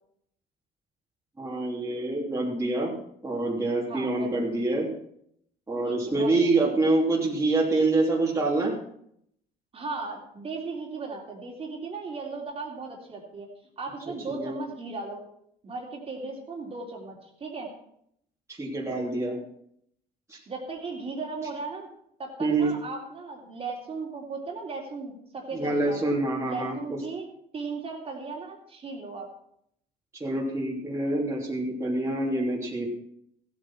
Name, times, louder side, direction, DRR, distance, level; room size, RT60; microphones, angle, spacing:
voice 1, 1.4-2.9 3.2-4.9 5.7-8.7 14.3-14.6 18.5-19.4 20.3-20.4 22.4-22.7 25.5-27.0 30.2-32.9, right 2 dB, 15° right, -4 dB, 3.2 m, -26 dB
voice 2, 3.9-4.3 5.9-6.6 9.7-13.5 13.8-15.2 15.6-17.7 20.5-21.9 22.2-26.0 26.4-27.3 27.5-29.3, right 4 dB, 35° right, 0 dB, 3.4 m, -36 dB
15.0 x 8.2 x 6.0 m, 0.71 s
cardioid pair, 110°, 17 cm